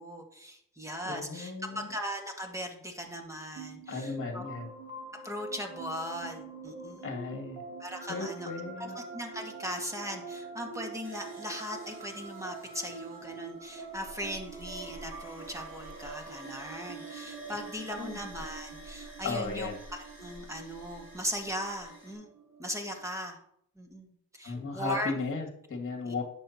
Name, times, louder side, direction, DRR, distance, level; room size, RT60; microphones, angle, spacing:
voice 1, 0.0-4.5 5.2-7.0 7.8-8.5 8.8-19.7 20.2-22.3 22.6-23.4 23.8-24.1 24.3-25.1 26.1-26.2, equal, 10° right, 3 dB, 1.8 m, -38 dB
voice 2, 1.1-1.9 3.9-4.7 7.0-7.6 8.1-9.0 18.0-18.2 19.2-19.8 24.4-26.2, left 4 dB, 35° left, 2 dB, 2.1 m, -35 dB
sound 1, 3.6-23.1, right 4 dB, 80° right, 2.7 m, -45 dB
sound 2, 11.0-22.1, left 1 dB, 35° right, 4.0 m, -51 dB
10.5 x 7.6 x 2.9 m, 0.69 s
cardioid pair, 95°, 35 cm